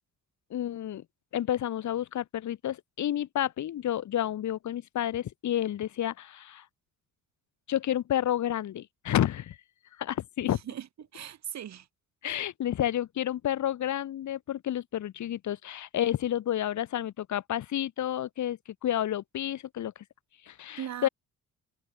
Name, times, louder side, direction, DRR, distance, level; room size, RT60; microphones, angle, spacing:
voice 1, 0.5-1.0 1.3-6.6 7.7-9.6 10.0-10.6 12.2-19.9 20.5-21.1, left 11 dB, 70° left, 4.0 m, -30 dB
voice 2, 10.5-11.9 12.2-12.4 20.8-21.1, right 10 dB, 65° right, 3.6 m, -39 dB
open air
cardioid pair, 90°, 30 cm